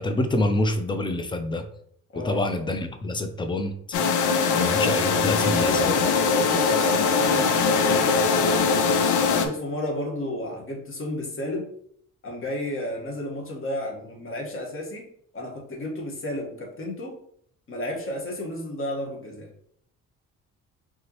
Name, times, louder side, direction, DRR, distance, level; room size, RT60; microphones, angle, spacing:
voice 1, 0.0-1.7 2.2-3.7 4.6-6.0, left 2 dB, 15° left, 8 dB, 0.5 m, -26 dB
voice 2, 2.1-2.5 5.7-8.9 9.3-11.7 12.2-17.2 17.7-19.5, left 1 dB, 45° left, 0 dB, 1.5 m, -32 dB
sound 1, 3.9-9.5, left 5 dB, 80° left, 0.6 m, -21 dB
4.7 x 3.0 x 3.0 m, 0.65 s
cardioid pair, 90°, 30 cm